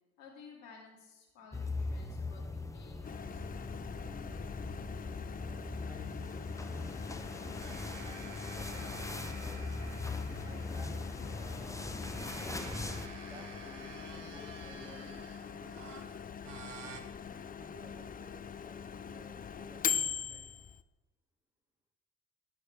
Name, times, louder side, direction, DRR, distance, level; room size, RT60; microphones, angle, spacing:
voice 1, 0.2-4.3, left 4 dB, 70° left, -2 dB, 2.6 m, -56 dB
sound 1, 1.5-13.1, left 3 dB, 10° left, 0.9 m, -40 dB
Microwave oven, 3.0-20.8, left 7 dB, 25° left, 0.5 m, -42 dB
voice 2, 5.3-9.7 10.3-12.7 13.2-16.3 17.2-20.5, equal, 10° right, 2 dB, 2.4 m, -56 dB
sound 2, 7.6-11.1 11.8-17.0, right 6 dB, 85° right, 0.8 m, -51 dB
18.5 x 6.4 x 3.5 m, 1.1 s
figure-of-eight pair, 45°, 36 cm